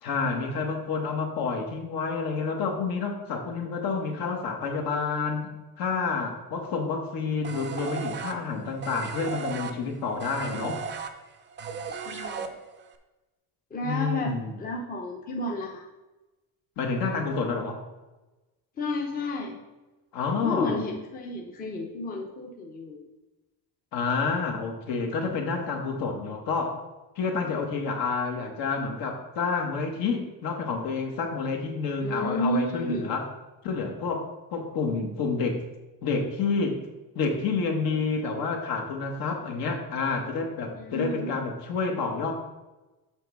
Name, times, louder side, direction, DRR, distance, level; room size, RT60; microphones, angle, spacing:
voice 1, 0.0-5.5 5.8-10.8 13.8-14.6 16.8-17.8 20.1-20.8 23.9-26.8 27.2-33.2 33.6-35.6 36.0-36.8 37.1-42.3, left 4 dB, 60° left, 3 dB, 1.3 m, -29 dB
sound 1, 7.4-12.9, right 5 dB, 30° right, 0.5 m, -36 dB
voice 2, 11.9-12.5 13.7-15.8 18.8-19.6 20.4-23.0 32.0-33.1 40.7-41.3, left 1 dB, 20° left, 0 dB, 0.8 m, -32 dB
7.6 x 3.5 x 6.1 m, 1.1 s
cardioid pair, 160°, 40 cm